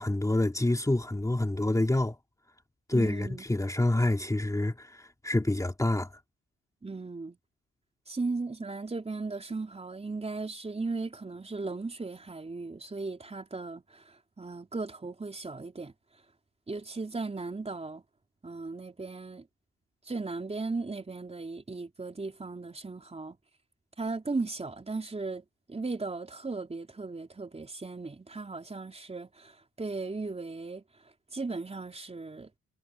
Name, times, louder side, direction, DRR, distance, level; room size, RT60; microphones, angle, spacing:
voice 1, 0.0-2.2 2.9-6.1, left 1 dB, 10° left, 2.9 m, -27 dB
voice 2, 2.9-3.4 6.8-7.4 8.1-15.9 16.7-18.0 18.4-19.5 20.1-23.4 24.0-30.8 31.3-32.5, right 3 dB, 20° right, 3.9 m, -37 dB
cardioid pair, 90°, 30 cm